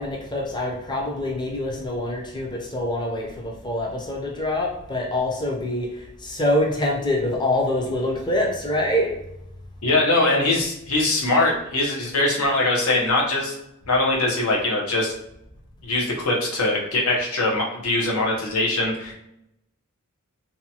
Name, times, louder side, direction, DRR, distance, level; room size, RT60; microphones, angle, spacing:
voice 1, 0.0-9.1, left 1 dB, 20° left, -1 dB, 0.5 m, -25 dB
voice 2, 9.8-13.5 13.9-15.1 15.8-19.1, left 2 dB, 80° left, -2 dB, 0.8 m, -22 dB
2.7 x 2.2 x 2.7 m, 0.81 s
head